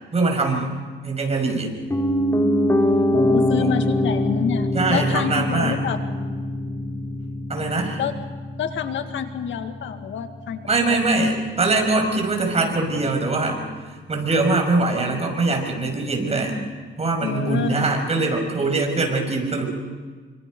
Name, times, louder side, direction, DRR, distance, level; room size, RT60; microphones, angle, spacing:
voice 1, 0.1-0.7 1.0-1.7 3.6-3.7 4.7-5.8 7.5-8.0 10.6-16.5 17.0-19.7, right 3 dB, 30° right, 3 dB, 6.2 m, -22 dB
Piano, 1.9-11.9 12.2-12.3, left 1 dB, 15° left, 2.6 m, -24 dB
voice 2, 3.1-6.0 8.0-8.2 8.6-11.0 17.2-17.9, left 8 dB, 75° left, 7 dB, 1.9 m, -27 dB
28.5 x 25.5 x 5.4 m, 1.5 s
cardioid pair, 90°, 20 cm